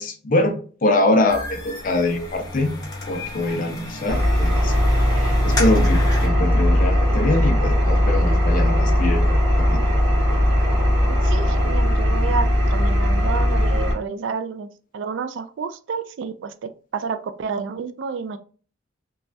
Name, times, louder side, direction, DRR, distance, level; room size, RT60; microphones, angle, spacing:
voice 1, 0.0-2.7 3.1-4.7 5.2-9.8, left 2 dB, 40° left, 5 dB, 0.4 m, -23 dB
sound 1, 1.3-6.3, left 1 dB, 20° left, 0.8 m, -32 dB
Engine, 4.1-13.9, equal, 85° right, 1.1 m, -19 dB
sound 2, 4.5-11.7, right 1 dB, 15° right, 0.6 m, -35 dB
voice 2, 11.1-14.7 14.9-18.4, right 5 dB, 70° right, 11 dB, 0.3 m, -30 dB
3.0 x 2.3 x 2.6 m, 0.40 s
head